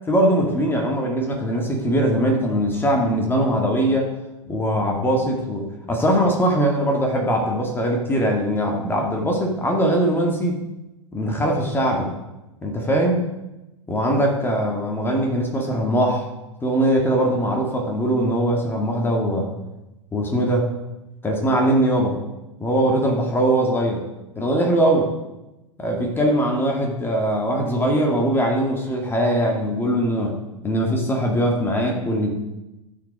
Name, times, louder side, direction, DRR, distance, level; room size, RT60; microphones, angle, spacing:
voice 1, 0.1-4.1 4.5-10.6 11.1-12.1 12.6-13.2 13.9-16.3 16.6-19.5 20.1-20.7 21.2-22.2 22.6-24.0 24.4-25.1 25.8-30.4 30.6-32.3, right 1 dB, 15° left, 1 dB, 1.8 m, -21 dB
14.0 x 5.2 x 5.1 m, 0.99 s
figure-of-eight pair, 95°, 17 cm